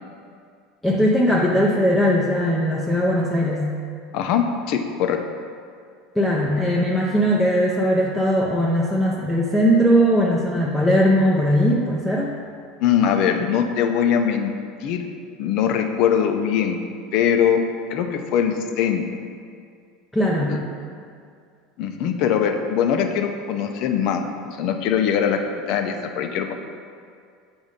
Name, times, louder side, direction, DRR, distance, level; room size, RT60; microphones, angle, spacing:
voice 1, 0.8-3.7 6.2-12.3 20.1-20.5, equal, 5° left, -5 dB, 0.6 m, -19 dB
voice 2, 4.1-5.2 12.8-14.5 14.8-15.1 15.4-16.8 17.1-17.6 17.9-19.0 20.5-20.6 21.8-25.4 25.7-26.5, left 8 dB, 60° left, 5 dB, 0.5 m, -21 dB
7.3 x 2.6 x 5.1 m, 2.2 s
supercardioid pair, 115°, 0 cm